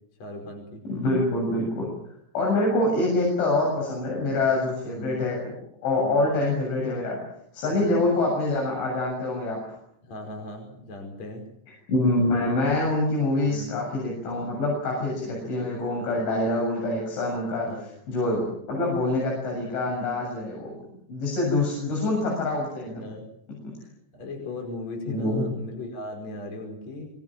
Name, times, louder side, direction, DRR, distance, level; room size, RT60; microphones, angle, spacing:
voice 1, 0.2-0.8 1.5-1.7 4.4-5.2 6.0-6.2 7.7-8.0 10.0-11.4 13.5-13.7 17.5-17.9 22.8-23.3 23.8-27.1, left 1 dB, 35° left, 3 dB, 6.1 m, -38 dB
voice 2, 0.9-1.9 2.3-5.5 5.8-7.2 7.5-9.6 11.9-17.7 18.1-20.7 21.1-23.1 23.6-23.7 25.1-25.4, left 2 dB, 80° left, -2 dB, 9.8 m, -25 dB
26.0 x 24.5 x 7.5 m, 0.73 s
omnidirectional pair, 5.3 m